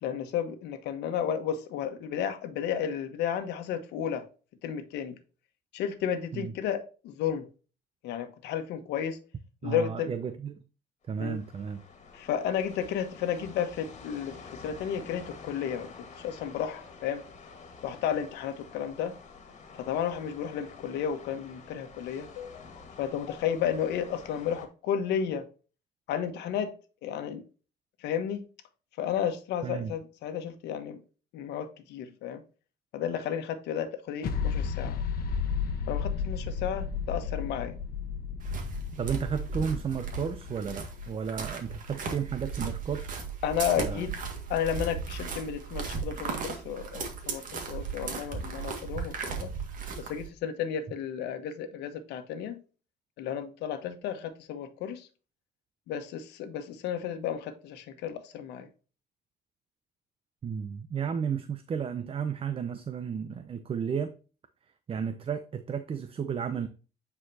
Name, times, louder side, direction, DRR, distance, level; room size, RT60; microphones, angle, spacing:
voice 1, 0.0-4.3 4.6-5.2 5.7-7.4 8.0-9.2 9.6-10.1 11.2-11.4 12.1-14.4 14.6-17.2 17.8-19.2 19.8-22.6 23.0-25.5 26.1-26.7 27.0-27.4 28.0-28.5 29.0-31.0 31.3-32.4 32.9-35.0 35.9-37.8 43.4-44.1 44.5-49.5 50.0-52.6 53.2-55.1 55.9-58.7, left 8 dB, 85° left, 1.3 m, -32 dB
voice 2, 9.6-10.6 11.1-11.8 29.6-29.9 39.0-43.2 43.8-44.1 60.4-64.1 64.9-66.7, right 7 dB, 35° right, 0.6 m, -33 dB
sound 1, 11.1-24.7, left 4 dB, 40° left, 2.0 m, -49 dB
sound 2, 34.2-41.8, left 6 dB, 60° left, 1.1 m, -33 dB
sound 3, 38.4-50.3, right 5 dB, 55° right, 2.0 m, -36 dB
8.8 x 4.8 x 2.8 m
cardioid pair, 110°, 17 cm